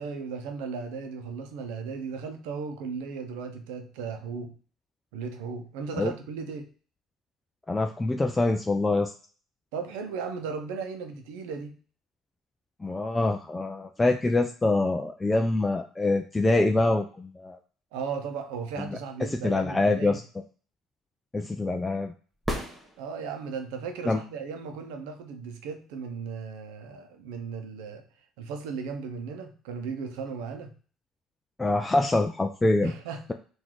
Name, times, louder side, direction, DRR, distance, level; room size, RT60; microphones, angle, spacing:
voice 1, 0.0-4.5 5.1-6.7 9.7-11.7 17.9-20.2 23.0-28.0 28.4-30.7 32.8-33.3, right 5 dB, 90° right, 5 dB, 0.7 m, -36 dB
voice 2, 7.7-9.1 12.8-17.6 18.8-19.0 19.3-20.2 21.3-22.1 24.1-24.2 31.6-32.9, left 2 dB, 15° left, 4 dB, 0.4 m, -25 dB
sound 1, 22.4-23.6 27.5-27.6, equal, 10° right, 1.1 m, -34 dB
3.9 x 2.6 x 4.6 m, 0.41 s
supercardioid pair, 100°, 0 cm